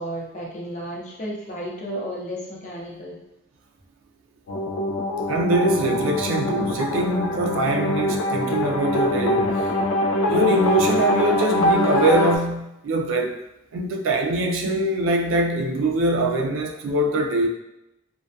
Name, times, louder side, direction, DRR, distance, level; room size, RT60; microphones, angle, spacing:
voice 1, 0.0-3.2, equal, 35° left, -3 dB, 0.6 m, -33 dB
sound 1, 4.5-12.4, left 1 dB, 85° left, 0.3 m, -23 dB
voice 2, 5.3-9.7 10.3-13.4 13.7-17.5, right 1 dB, 70° right, 1 dB, 0.3 m, -23 dB
2.2 x 2.2 x 2.5 m, 0.88 s
head